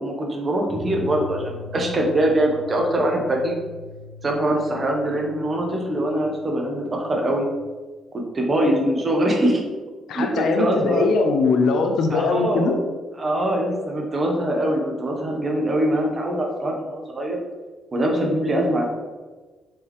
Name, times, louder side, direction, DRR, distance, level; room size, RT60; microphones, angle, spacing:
voice 1, 0.0-3.6 4.2-7.5 8.3-9.6 10.1-11.1 12.1-12.8 13.2-17.4 17.9-18.9, right 1 dB, 35° right, 0 dB, 0.9 m, -23 dB
sound 1, 0.7-7.6, left 3 dB, 65° right, 1.4 m, -40 dB
voice 2, 10.1-12.8, left 4 dB, 70° left, 4 dB, 0.5 m, -21 dB
4.3 x 3.1 x 3.5 m, 1.3 s
cardioid pair, 90°, 0 cm